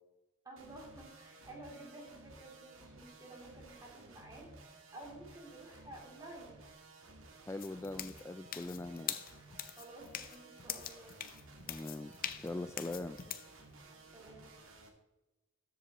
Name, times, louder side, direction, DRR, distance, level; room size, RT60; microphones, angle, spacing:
voice 1, 0.4-4.5 4.9-6.6 9.8-11.1 13.8-14.5, right 2 dB, 20° right, -2 dB, 3.0 m, -52 dB
sound 1, 0.6-14.9, right 2 dB, 85° right, 1.8 m, -56 dB
voice 2, 7.5-9.2 11.7-12.1 12.4-13.2, left 2 dB, 15° left, 8 dB, 0.3 m, -41 dB
sound 2, 7.6-13.5, left 10 dB, 45° left, 0.7 m, -43 dB
13.5 x 7.7 x 3.0 m, 1.1 s
head